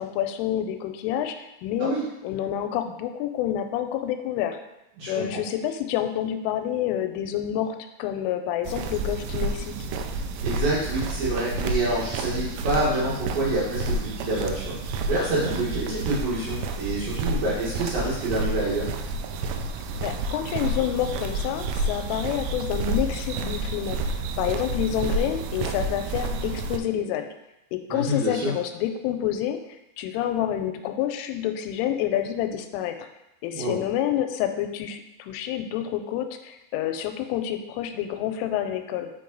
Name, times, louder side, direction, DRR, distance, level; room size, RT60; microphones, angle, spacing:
voice 1, 0.0-1.9 2.2-4.6 5.1-9.8 15.9-16.0 20.0-24.0 24.4-27.3 27.7-29.6 30.0-33.1 33.4-39.1, left 11 dB, 85° left, 7 dB, 3.0 m, -28 dB
voice 2, 5.0-5.4 10.4-14.7 15.1-18.9 27.9-28.5 33.5-33.8, right 2 dB, 60° right, -7 dB, 2.7 m, -27 dB
sound 1, 8.6-26.8, right 2 dB, 85° right, 3.2 m, -30 dB
7.1 x 5.4 x 3.9 m, 0.89 s
omnidirectional pair, 5.7 m